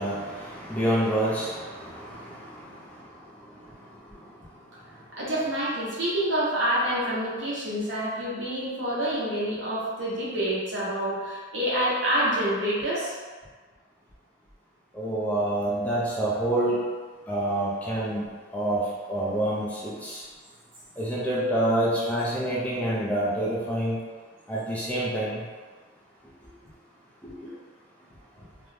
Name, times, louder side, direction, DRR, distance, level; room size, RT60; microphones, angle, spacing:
voice 1, 0.0-2.5 14.9-16.8 17.3-18.3 18.5-18.8 19.1-20.2 21.0-24.0 24.5-25.4 27.2-27.3, right 1 dB, 5° left, -7 dB, 0.4 m, -27 dB
voice 2, 5.1-13.1, right 1 dB, 70° right, -8 dB, 1.0 m, -27 dB
2.5 x 2.1 x 3.2 m, 1.5 s
head